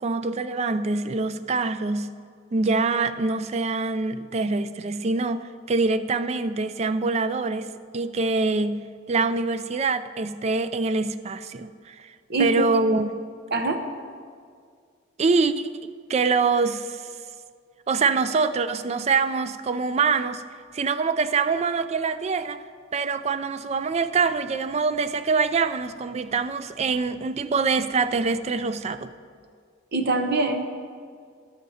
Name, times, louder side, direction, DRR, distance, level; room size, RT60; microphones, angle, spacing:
voice 1, 0.0-2.1 2.5-12.1 12.4-13.1 15.2-15.7 16.1-17.1 17.9-20.4 20.7-22.6 22.9-29.1, right 4 dB, 35° right, 12 dB, 0.3 m, -24 dB
voice 2, 12.3-12.6 13.5-13.8 29.9-30.7, right 3 dB, 55° right, 6 dB, 0.8 m, -24 dB
20.0 x 7.2 x 2.8 m, 2.1 s
head